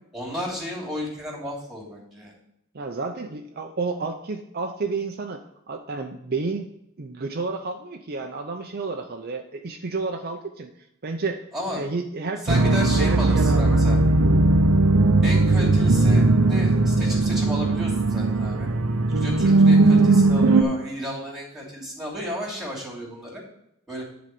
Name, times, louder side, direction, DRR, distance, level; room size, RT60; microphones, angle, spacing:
voice 1, 0.1-2.3 11.5-11.8 12.4-14.0 15.2-18.7 19.1-23.4 23.9-24.0, equal, ahead, -3 dB, 2.9 m, -33 dB
voice 2, 2.7-5.4 5.7-6.7 7.0-10.7 11.0-11.4 11.7-13.8, right 3 dB, 45° right, 4 dB, 0.6 m, -31 dB
sound 1, 12.5-20.6, right 2 dB, 85° right, 0.8 m, -18 dB
10.5 x 4.1 x 6.6 m, 0.79 s
head